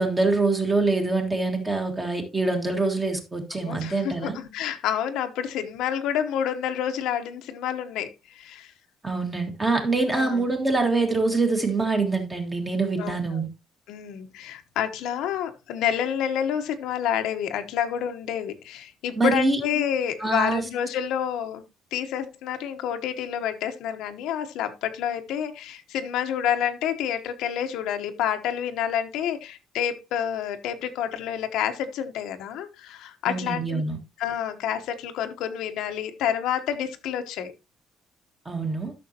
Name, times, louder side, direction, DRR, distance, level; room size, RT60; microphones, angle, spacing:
voice 1, 0.0-4.4 9.0-13.5 19.2-19.6 20.2-20.6 33.3-34.0 38.5-38.9, right 3 dB, 15° right, 1.8 m, -25 dB
voice 2, 3.6-8.7 10.1-10.5 13.0-13.4 13.9-21.6 21.9-33.8 34.2-37.5, left 9 dB, 80° left, 1.0 m, -28 dB
12.5 x 6.3 x 2.8 m
cardioid pair, 170°, 0 cm